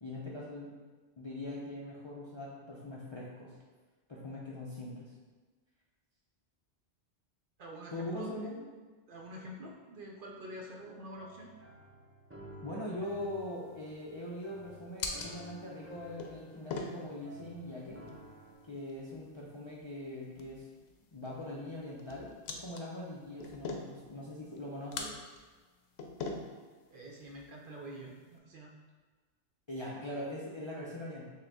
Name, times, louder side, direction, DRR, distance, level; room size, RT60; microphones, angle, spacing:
voice 1, 0.0-0.8 1.2-3.5 4.1-5.1 7.9-8.6 12.6-18.0 18.7-20.7 21.1-25.1 29.7-31.3, left 1 dB, 35° left, -6 dB, 0.4 m, -42 dB
voice 2, 7.6-8.3 9.1-11.5 26.9-28.7, equal, 60° right, 0 dB, 0.7 m, -47 dB
sound 1, 11.1-18.5, right 1 dB, 15° right, 0.6 m, -53 dB
sound 2, 13.0-28.4, left 3 dB, 70° left, 0.8 m, -46 dB
6.3 x 2.3 x 3.4 m, 1.3 s
omnidirectional pair, 1.2 m